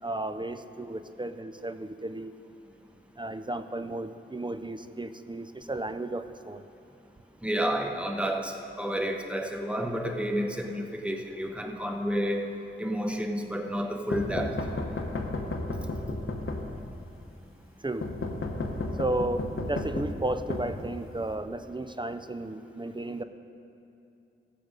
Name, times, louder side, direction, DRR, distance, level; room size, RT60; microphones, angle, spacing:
voice 1, 0.0-2.3 3.2-6.7 17.8-18.1 19.0-23.2, right 2 dB, 20° right, 10 dB, 0.4 m, -33 dB
voice 2, 7.4-12.5 12.8-14.6, equal, 5° right, 3 dB, 0.9 m, -30 dB
sound 1, 14.1-17.1 18.0-21.3, left 2 dB, 75° left, 1.0 m, -33 dB
16.5 x 6.8 x 5.1 m, 2.7 s
wide cardioid pair, 80°, 21 cm